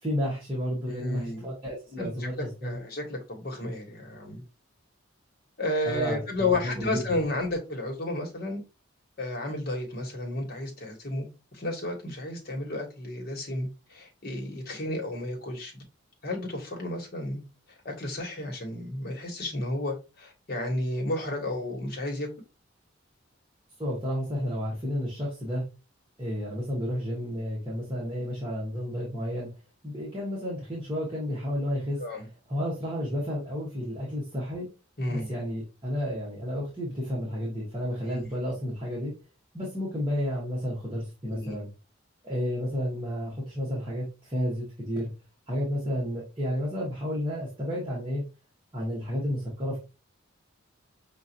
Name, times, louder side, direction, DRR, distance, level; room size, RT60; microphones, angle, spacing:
voice 1, 0.0-2.8 5.8-7.2 23.8-25.6 26.2-29.5 29.8-32.0 32.5-34.7 35.1-39.1 39.5-41.7 42.2-45.1 45.5-48.2 48.7-49.8, equal, 25° right, -5 dB, 1.3 m, -31 dB
voice 2, 0.9-1.5 2.0-4.4 5.6-8.6 9.2-15.8 16.2-17.4 17.8-22.3 32.0-32.3 35.0-35.3 38.1-38.3 41.3-41.6, left 2 dB, 50° left, 1 dB, 1.3 m, -32 dB
5.9 x 2.5 x 2.8 m, 0.29 s
head